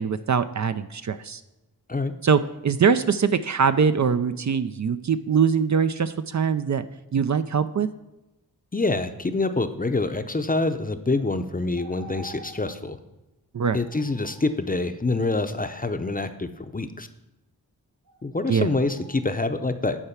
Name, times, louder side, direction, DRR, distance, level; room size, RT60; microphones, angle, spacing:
voice 1, 0.0-1.4 2.2-6.8 7.1-7.9 13.5-13.8 18.5-18.7, right 6 dB, 50° right, 11 dB, 0.5 m, -22 dB
voice 2, 8.7-13.0 13.7-17.1 18.2-20.1, left 3 dB, 20° left, 8 dB, 0.7 m, -26 dB
sound 1, 11.1-11.3 11.7-12.7 13.8-14.4 18.1-18.2 18.7-19.3, right 2 dB, 70° right, 2.5 m, -46 dB
9.9 x 4.6 x 5.8 m, 0.98 s
wide cardioid pair, 55°, 38 cm